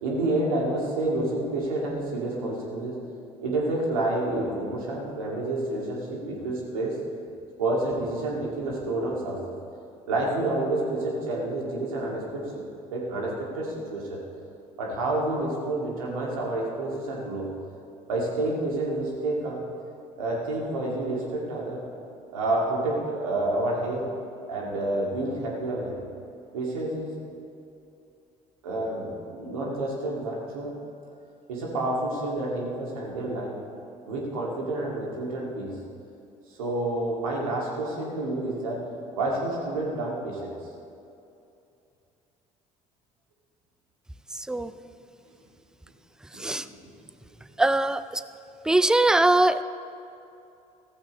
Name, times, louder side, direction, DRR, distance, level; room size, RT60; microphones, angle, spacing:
voice 1, 0.0-3.0 3.4-7.0 7.6-9.4 10.1-12.6 12.9-14.2 14.8-17.5 18.1-19.6 20.2-21.8 22.3-24.1 24.5-26.0 26.5-27.1 28.6-30.7 31.5-33.6 34.1-35.8 36.5-38.9 39.1-40.5 46.3-46.9, right 2 dB, 75° right, -3 dB, 2.4 m, -29 dB
voice 2, 47.6-48.0 48.7-49.6, right 2 dB, 5° right, 14 dB, 0.4 m, -21 dB
15.5 x 14.0 x 3.2 m, 2.7 s
figure-of-eight pair, 55°, 18 cm